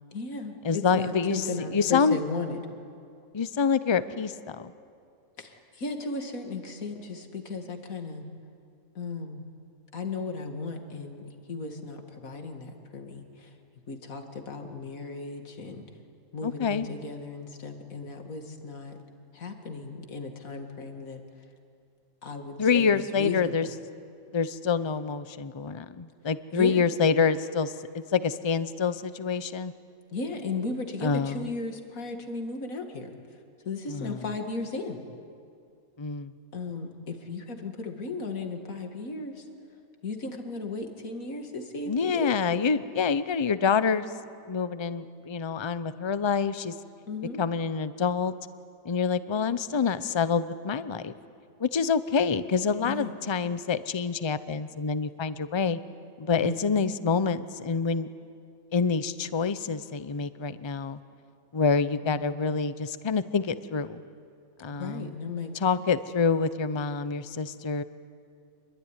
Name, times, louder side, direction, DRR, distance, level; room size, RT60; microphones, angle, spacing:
voice 1, 0.1-2.6 5.4-8.2 9.0-9.4 9.9-13.5 13.9-15.8 16.3-19.0 19.3-21.2 22.2-23.7 26.5-26.9 30.1-33.1 33.6-35.0 36.5-39.4 40.0-42.4 47.1-47.4 52.8-53.1 56.3-56.6 62.1-62.3 64.7-65.5, left 3 dB, 70° left, 5 dB, 2.5 m, -35 dB
voice 2, 0.6-2.2 3.3-4.7 16.4-16.9 22.6-23.7 24.3-29.7 31.0-31.5 33.9-34.2 36.0-36.3 41.9-44.1 44.5-46.7 47.4-48.3 48.8-51.1 51.6-55.8 56.2-58.1 58.7-61.0 61.5-64.0 64.6-65.1 65.6-67.8, left 5 dB, 30° left, 13 dB, 0.6 m, -27 dB
26.5 x 22.5 x 9.9 m, 2.4 s
omnidirectional pair, 1.5 m